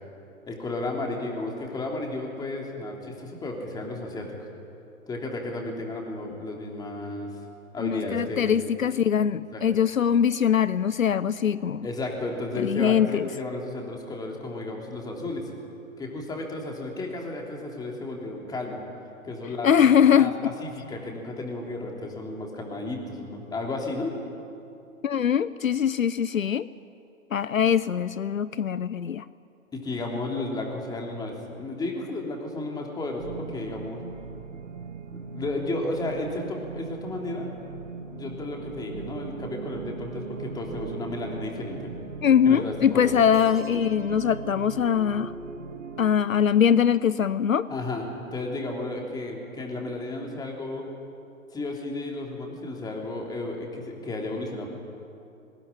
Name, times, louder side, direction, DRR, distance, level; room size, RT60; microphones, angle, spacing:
voice 1, 0.5-4.3 5.1-7.3 7.7-8.5 9.5-9.6 11.8-15.5 16.0-18.8 19.2-19.7 20.1-24.1 29.7-34.0 35.1-37.5 38.1-41.9 42.4-43.1 47.7-48.0 48.3-50.9 51.5-54.7, left 2 dB, 10° left, 0 dB, 3.3 m, -33 dB
voice 2, 7.8-11.9 12.6-13.3 19.6-20.5 25.0-26.7 27.3-29.3 42.2-45.3 46.0-47.7, left 8 dB, 70° left, 17 dB, 0.7 m, -22 dB
sound 1, 33.2-46.1, right 4 dB, 60° right, 2.0 m, -39 dB
sound 2, 43.3-45.3, right 4 dB, 90° right, 3.0 m, -48 dB
22.5 x 20.5 x 10.0 m, 2.7 s
figure-of-eight pair, 125°, 41 cm